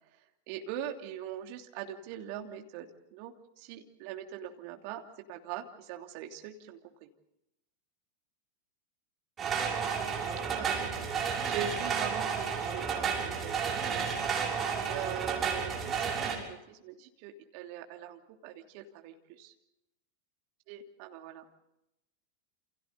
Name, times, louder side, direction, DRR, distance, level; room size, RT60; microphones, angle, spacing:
voice 1, 0.5-5.0 5.3-7.1 10.5-14.3 14.9-19.5 20.7-21.4, right 10 dB, 45° right, 3 dB, 3.1 m, -42 dB
sound 1, 9.4-16.4, right 6 dB, 25° right, 6.6 m, -32 dB
29.5 x 29.0 x 4.1 m, 0.87 s
figure-of-eight pair, 90°, 0 cm